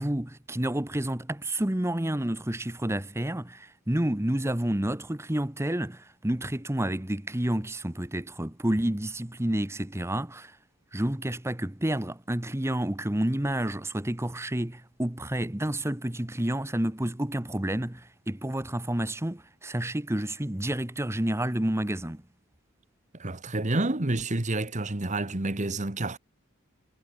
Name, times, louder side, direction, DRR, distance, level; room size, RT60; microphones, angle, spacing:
voice 1, 0.0-10.5 10.9-22.2, right 1 dB, 10° right, 1.0 m, -29 dB
voice 2, 23.2-26.2, right 2 dB, 35° right, 1.4 m, -29 dB
head